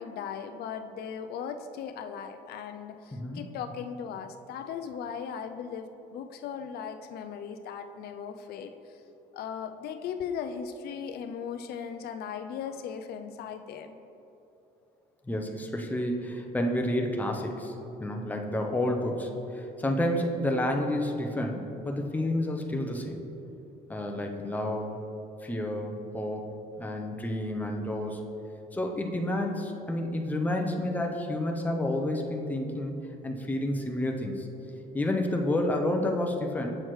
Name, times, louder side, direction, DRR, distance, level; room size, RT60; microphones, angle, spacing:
voice 1, 0.0-9.0 9.3-14.0, left 7 dB, 70° left, 8 dB, 0.4 m, -38 dB
voice 2, 3.1-3.4 15.3-17.7 18.0-23.2 23.9-25.0 25.4-26.5 26.8-28.2 28.7-32.9 33.2-34.5 34.9-36.8, left 1 dB, 10° left, 2 dB, 0.6 m, -30 dB
7.5 x 6.3 x 3.1 m, 3.0 s
cardioid pair, 110°, 17 cm